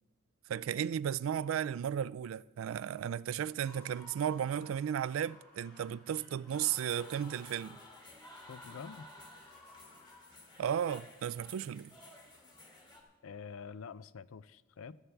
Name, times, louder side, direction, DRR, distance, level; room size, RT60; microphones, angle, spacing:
voice 1, 0.5-7.8 10.6-11.9, right 9 dB, 70° right, 0.3 m, -34 dB
sound 1, 3.4-11.5, left 1 dB, 50° left, 4.5 m, -59 dB
sound 2, 6.5-13.0, left 2 dB, 20° left, 2.0 m, -54 dB
voice 2, 8.5-9.1 13.2-15.0, left 6 dB, 75° left, 0.4 m, -47 dB
14.5 x 12.5 x 3.4 m
head